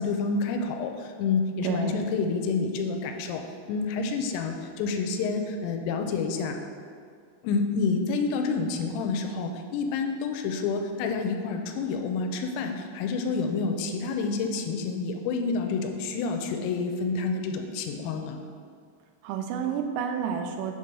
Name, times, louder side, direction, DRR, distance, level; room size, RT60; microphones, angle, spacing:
voice 1, 0.0-6.6 7.4-18.4, left 4 dB, 85° left, 4 dB, 3.2 m, -28 dB
voice 2, 1.6-2.1 19.2-20.8, right 7 dB, 85° right, 5 dB, 3.2 m, -30 dB
7.7 x 3.8 x 5.3 m, 2.1 s
omnidirectional pair, 5.9 m